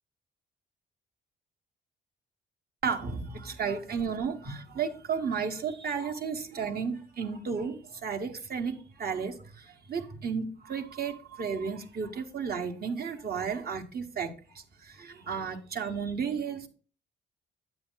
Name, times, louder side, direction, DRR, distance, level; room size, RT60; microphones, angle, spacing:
voice 1, 2.8-16.7, right 6 dB, 50° right, 1.3 m, -33 dB
8.9 x 8.1 x 2.2 m
cardioid pair, 90°, 20 cm